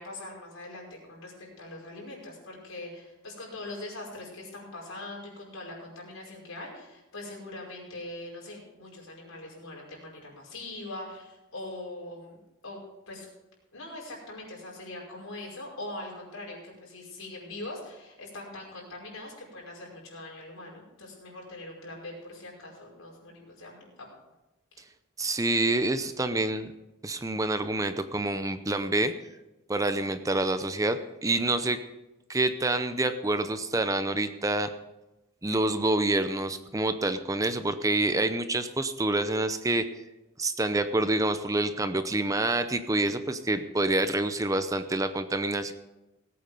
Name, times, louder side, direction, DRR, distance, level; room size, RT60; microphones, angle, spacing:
voice 1, 0.0-12.4 12.6-12.8 13.1-13.3 13.7-24.1 24.7-24.8, left 2 dB, 85° left, -2 dB, 5.4 m, -42 dB
voice 2, 25.2-26.7 27.0-29.1 29.7-31.8 32.3-34.7 35.4-39.9 40.4-45.7, right 2 dB, 15° right, 10 dB, 0.6 m, -27 dB
18.5 x 8.6 x 5.3 m, 1.0 s
head